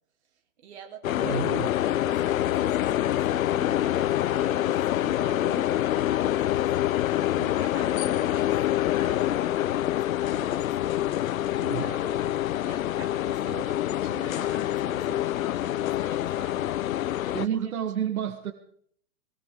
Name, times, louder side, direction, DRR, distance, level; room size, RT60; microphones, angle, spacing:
voice 1, 0.6-8.6 8.9-16.7 17.2-17.6, right 7 dB, 50° right, 3 dB, 2.8 m, -46 dB
sound 1, 1.0-17.5, left 13 dB, 70° left, 0.6 m, -26 dB
voice 2, 1.2-1.7 9.7-9.9 11.6-11.9 17.3-18.5, right 9 dB, 75° right, 8 dB, 1.3 m, -30 dB
20.0 x 17.0 x 3.6 m, 0.63 s
hypercardioid pair, 170°, 43 cm